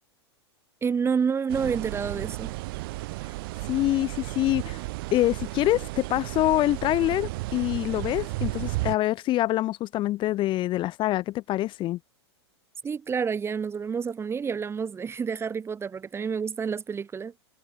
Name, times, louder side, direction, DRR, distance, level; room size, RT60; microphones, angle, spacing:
voice 1, 0.8-2.5 12.8-17.3, right 6 dB, 20° right, 1.7 m, -29 dB
sound 1, 1.5-9.0, right 22 dB, 55° right, 1.7 m, -33 dB
voice 2, 3.7-4.8 5.1-12.0, left 15 dB, 35° left, 1.6 m, -25 dB
hypercardioid pair, 105°, 14 cm